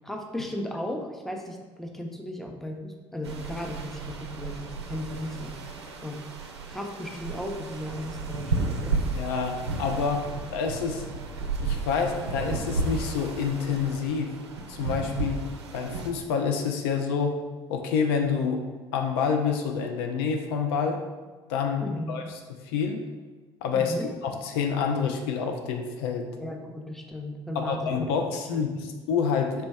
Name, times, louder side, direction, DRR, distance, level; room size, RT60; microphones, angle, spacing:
voice 1, 0.0-5.6 6.0-6.2 6.7-9.0 21.8-22.2 23.7-24.1 26.4-28.1 28.5-28.9, left 1 dB, ahead, 2 dB, 0.6 m, -36 dB
sound 1, 3.2-16.1, right 3 dB, 80° right, 0.4 m, -33 dB
voice 2, 8.9-10.2 10.5-11.0 11.6-14.3 14.7-15.4 15.7-17.4 17.7-18.7 18.9-21.0 21.5-22.4 22.6-23.0 23.6-24.0 24.2-26.3 27.5-29.6, left 6 dB, 65° left, 4 dB, 0.4 m, -27 dB
4.3 x 3.0 x 3.3 m, 1.3 s
figure-of-eight pair, 55°, 14 cm